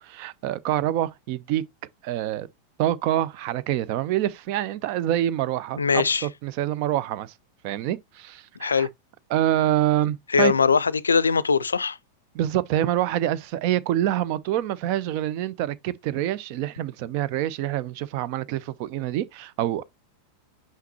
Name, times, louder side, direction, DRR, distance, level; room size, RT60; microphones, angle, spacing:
voice 1, 0.0-1.6 2.0-2.5 2.8-7.3 7.6-8.9 9.3-10.5 12.3-19.8, right 12 dB, 45° right, 0.6 m, -26 dB
voice 2, 5.8-6.3 8.6-8.9 10.3-12.0, left 5 dB, 75° left, 0.4 m, -21 dB
5.8 x 5.7 x 2.9 m
figure-of-eight pair, 90°, 0 cm